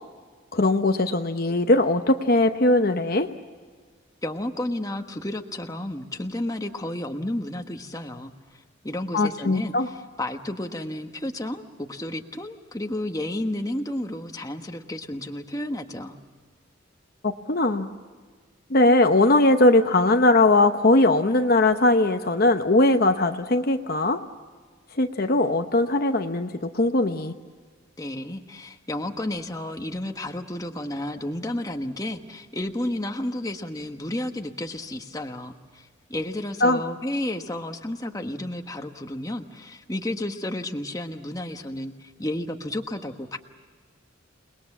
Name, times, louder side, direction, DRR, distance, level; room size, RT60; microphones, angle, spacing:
voice 1, 0.5-3.3 9.1-9.9 17.2-17.9 18.7-24.2 25.0-27.3 36.6-36.8, left 2 dB, 45° left, 6 dB, 0.9 m, -20 dB
voice 2, 4.2-8.3 8.8-16.2 28.0-43.4, left 1 dB, 15° left, 5 dB, 1.3 m, -32 dB
29.0 x 20.5 x 7.3 m, 1.5 s
head